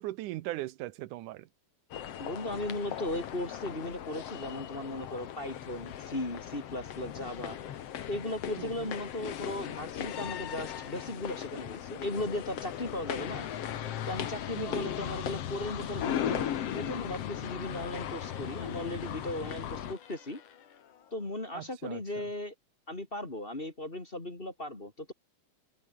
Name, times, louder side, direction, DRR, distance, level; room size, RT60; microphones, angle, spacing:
voice 1, 0.0-1.5 8.6-8.9 14.5-14.9 21.5-22.0, right 16 dB, 90° right, 2.3 m, -39 dB
sound 1, 1.9-19.9, left 10 dB, 55° left, 2.3 m, -37 dB
voice 2, 2.2-7.6 8.1-13.5 14.1-20.4 21.1-22.5 22.9-25.1, left 1 dB, 20° left, 2.6 m, -37 dB
sound 2, 17.5-21.7, left 9 dB, 75° left, 3.7 m, -53 dB
open air
omnidirectional pair, 3.6 m